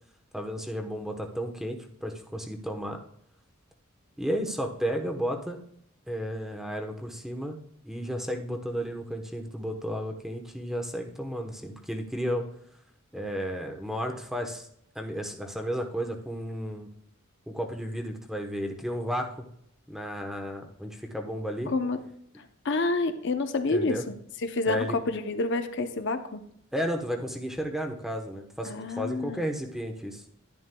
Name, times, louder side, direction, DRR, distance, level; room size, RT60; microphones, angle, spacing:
voice 1, 0.3-3.0 4.2-5.6 6.1-7.6 7.8-12.4 13.1-14.7 14.9-16.9 17.5-19.3 19.9-21.7 23.7-24.0 24.7-25.0 26.7-30.2, equal, ahead, 3 dB, 0.9 m, -33 dB
voice 2, 21.7-22.0 22.6-24.0 24.4-26.4 28.6-29.4, left 3 dB, 55° left, 8 dB, 0.7 m, -28 dB
11.0 x 11.0 x 2.2 m, 0.69 s
head